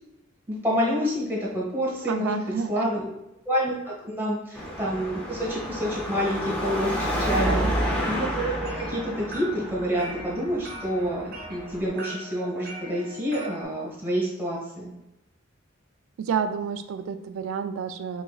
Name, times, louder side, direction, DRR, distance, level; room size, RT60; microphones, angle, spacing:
voice 1, 0.5-3.1 3.5-7.6 8.1-14.9, equal, 10° right, -5 dB, 1.1 m, -28 dB
voice 2, 2.1-2.9 7.4-7.8 16.2-18.2, right 6 dB, 75° right, 9 dB, 0.3 m, -30 dB
Car passing by / Traffic noise roadway noise / Engine, 4.5-11.9, equal, 5° left, 0.6 m, -30 dB
sound 1, 8.3-13.6, right 1 dB, 45° right, 0.7 m, -41 dB
3.8 x 3.1 x 2.3 m, 0.88 s
head